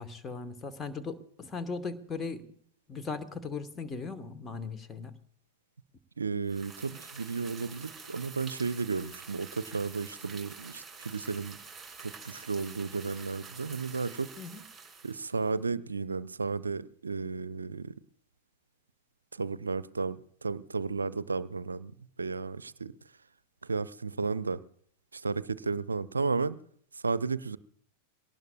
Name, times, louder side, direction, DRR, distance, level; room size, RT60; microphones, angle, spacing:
voice 1, 0.0-2.4 2.9-5.1 14.4-14.6, left 4 dB, 20° left, 1.4 m, -38 dB
voice 2, 6.2-11.6 12.0-14.3 15.0-18.0 19.3-23.0 23.6-24.6 25.1-26.6 26.9-27.6, right 4 dB, 75° right, 0.5 m, -33 dB
sound 1, 6.5-15.5, right 5 dB, 10° right, 3.0 m, -48 dB
23.0 x 18.5 x 2.4 m
figure-of-eight pair, 90°, 0 cm